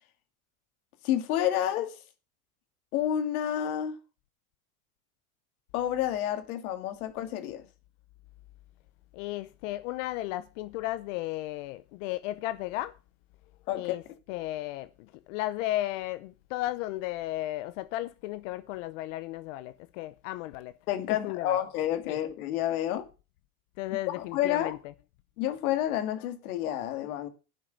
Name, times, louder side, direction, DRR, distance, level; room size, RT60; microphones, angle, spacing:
voice 1, 1.0-2.0 2.9-4.0 5.7-7.6 13.7-14.0 20.9-23.0 24.1-24.8 25.4-27.3, left 11 dB, 85° left, 2.1 m, -29 dB
voice 2, 9.1-13.0 13.7-14.0 14.3-20.7 21.1-21.6 22.1-22.2 23.8-24.8, left 16 dB, 60° left, 0.7 m, -34 dB
8.2 x 6.3 x 8.0 m
supercardioid pair, 150°, 42 cm